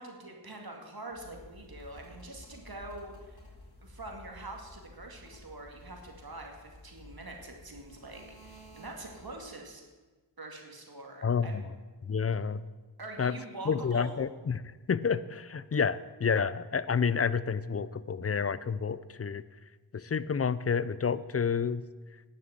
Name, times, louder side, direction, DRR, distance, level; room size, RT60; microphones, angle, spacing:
voice 1, 0.0-3.4 3.8-9.8 10.4-11.5 13.0-14.1, right 2 dB, 55° right, 1 dB, 2.1 m, -45 dB
sound 1, 1.1-9.5, left 1 dB, 60° left, 3.4 m, -52 dB
voice 2, 11.2-11.6 12.1-12.6 13.2-13.3 13.7-14.6 14.9-19.4 19.9-21.8, left 6 dB, 35° left, 16 dB, 0.5 m, -29 dB
10.5 x 6.6 x 7.7 m, 1.3 s
cardioid pair, 45°, 44 cm